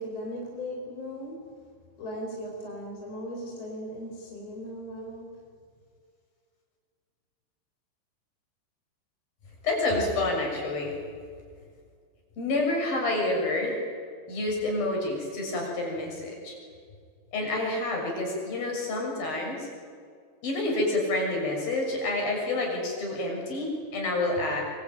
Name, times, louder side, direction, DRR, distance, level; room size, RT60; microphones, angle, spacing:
voice 1, 0.0-1.6 2.0-5.3, equal, 35° left, -1 dB, 5.5 m, -38 dB
voice 2, 9.6-10.9 12.4-13.8 14.3-16.5 17.3-19.7 20.4-24.6, left 2 dB, 50° left, 0 dB, 8.4 m, -28 dB
25.5 x 23.5 x 9.1 m, 2.1 s
omnidirectional pair, 5.2 m